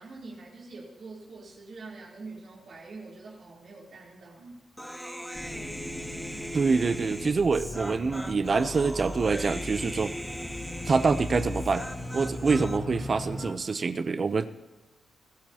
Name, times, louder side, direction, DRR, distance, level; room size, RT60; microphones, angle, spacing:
voice 1, 0.0-4.6, right 3 dB, 60° right, -4 dB, 3.5 m, -45 dB
Human voice, 4.8-12.8, equal, ahead, 0.8 m, -39 dB
sound 1, 5.3-13.6, left 2 dB, 25° left, 2.3 m, -38 dB
voice 2, 6.5-10.2 10.9-11.9 12.1-14.5, right 4 dB, 40° right, 12 dB, 0.6 m, -26 dB
26.0 x 15.0 x 2.9 m, 1.1 s
cardioid pair, 115°, 0 cm